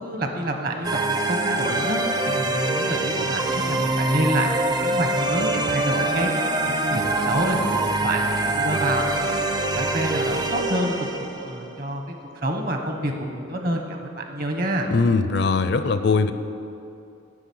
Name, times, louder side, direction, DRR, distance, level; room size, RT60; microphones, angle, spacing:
voice 1, 0.0-9.4 9.7-14.9, right 1 dB, 45° right, 4 dB, 1.2 m, -28 dB
sound 1, 0.8-11.6, right 2 dB, 20° right, 0.5 m, -24 dB
voice 2, 14.9-16.3, left 4 dB, 55° left, 11 dB, 0.5 m, -20 dB
10.0 x 6.4 x 8.6 m, 2.6 s
head